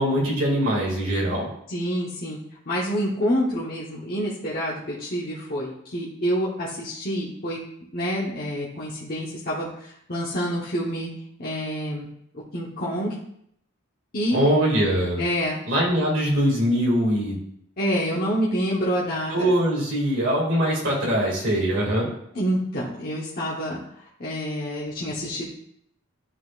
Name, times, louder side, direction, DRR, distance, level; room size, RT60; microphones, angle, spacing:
voice 1, 0.0-1.5 14.3-15.2 15.7-17.4 19.3-22.1, equal, 70° right, -3 dB, 2.4 m, -22 dB
voice 2, 1.7-2.4 2.7-7.6 7.9-9.7 10.1-11.1 11.4-12.1 12.5-13.1 14.1-14.4 15.2-15.6 17.8-19.5 22.3-23.8 24.2-25.4, equal, 45° left, -7 dB, 1.2 m, -27 dB
11.0 x 4.4 x 2.5 m, 0.71 s
head